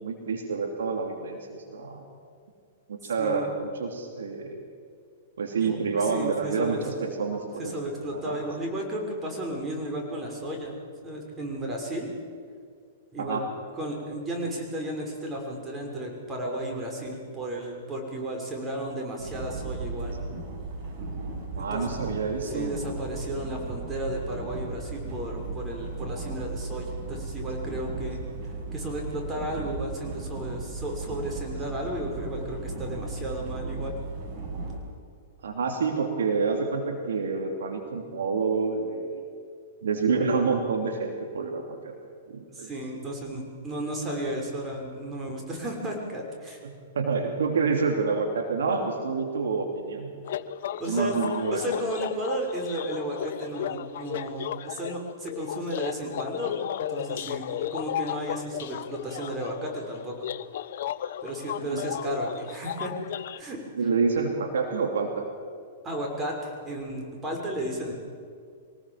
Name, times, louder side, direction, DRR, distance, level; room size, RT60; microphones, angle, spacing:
voice 1, 0.0-2.0 2.9-3.5 3.7-4.6 5.4-7.7 8.1-8.4 13.2-13.5 21.6-22.7 35.4-39.2 39.8-41.9 42.3-42.7 46.9-50.1 50.9-51.6 52.3-52.4 61.6-61.9 63.8-65.2, right 4 dB, 70° right, 3 dB, 2.9 m, -28 dB
voice 2, 3.0-3.5 5.6-6.8 7.6-10.7 11.0-12.1 13.1-13.4 13.8-20.1 21.5-22.1 22.4-28.3 28.7-33.9 42.5-46.6 50.8-51.2 51.5-60.1 61.2-62.9 63.4-63.6 65.8-67.9, right 1 dB, 20° right, 0 dB, 6.3 m, -34 dB
sound 1, 19.2-34.8, right 3 dB, 40° right, 6.2 m, -36 dB
sound 2, 50.2-63.4, left 10 dB, 60° left, 0.7 m, -34 dB
24.0 x 19.0 x 7.5 m, 2.2 s
figure-of-eight pair, 105°, 0 cm